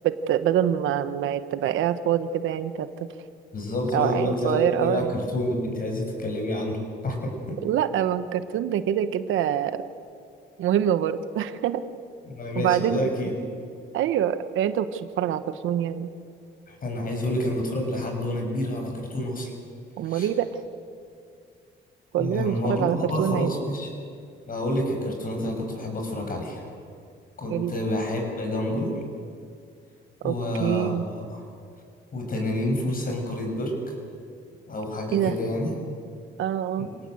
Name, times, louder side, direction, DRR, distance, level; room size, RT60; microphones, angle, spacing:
voice 1, 0.0-3.1 3.9-5.1 7.6-9.8 10.6-11.8 12.6-13.1 13.9-16.1 20.0-20.5 22.1-23.5 27.5-27.7 30.2-31.0 35.1-35.3 36.4-36.9, right 10 dB, 85° right, 12 dB, 1.2 m, -25 dB
voice 2, 3.5-7.6 12.3-13.3 16.7-19.5 20.0-20.3 22.2-23.9 24.4-26.7 27.4-28.9 30.2-31.4 32.1-33.9 34.7-35.7 36.8-36.9, left 1 dB, 45° left, 3 dB, 6.6 m, -28 dB
25.5 x 18.0 x 7.9 m, 2.3 s
cardioid pair, 90°, 20 cm